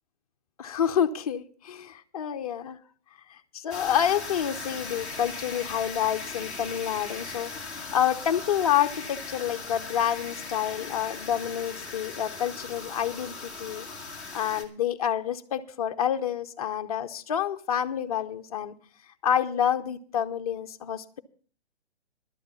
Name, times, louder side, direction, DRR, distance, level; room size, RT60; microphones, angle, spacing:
voice 1, 0.6-2.8 3.5-13.9 14.3-18.7 19.2-21.2, left 9 dB, 35° left, 7 dB, 0.8 m, -28 dB
sound 1, 3.7-14.6, left 4 dB, ahead, 1.2 m, -38 dB
12.0 x 8.5 x 6.9 m, 0.44 s
hypercardioid pair, 150°, 34 cm